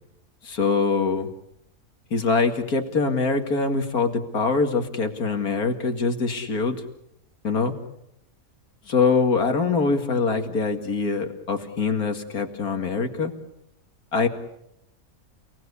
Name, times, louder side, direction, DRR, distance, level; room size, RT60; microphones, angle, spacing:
voice 1, 0.4-1.3 2.1-6.8 7.4-7.7 8.9-13.3 14.1-14.3, left 4 dB, 85° left, 6 dB, 2.7 m, -23 dB
30.0 x 19.0 x 8.4 m, 0.80 s
omnidirectional pair, 1.5 m